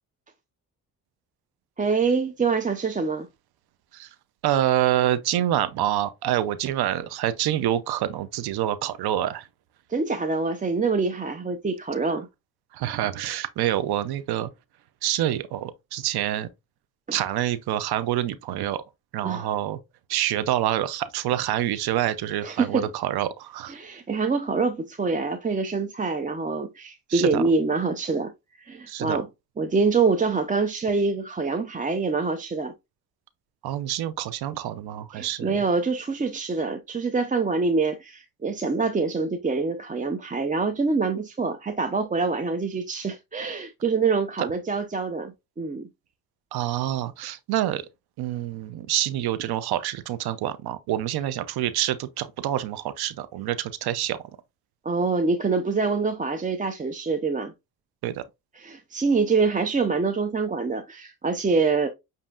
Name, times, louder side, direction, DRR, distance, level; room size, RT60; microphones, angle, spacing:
voice 1, 1.8-3.3 9.9-12.3 19.2-19.5 22.4-22.9 23.7-28.3 28.6-29.3 29.6-32.7 35.1-45.9 54.8-57.5 58.6-61.9, right 4 dB, 20° right, 0.5 m, -25 dB
voice 2, 4.4-9.5 12.7-14.5 15.0-16.5 17.1-18.8 19.1-19.8 20.1-23.7 27.1-27.4 28.9-29.2 33.6-35.6 44.4-44.5 46.5-47.8 48.2-54.2 58.0-58.2, right 12 dB, 80° right, 0.6 m, -27 dB
7.4 x 2.7 x 2.3 m
cardioid pair, 75°, 38 cm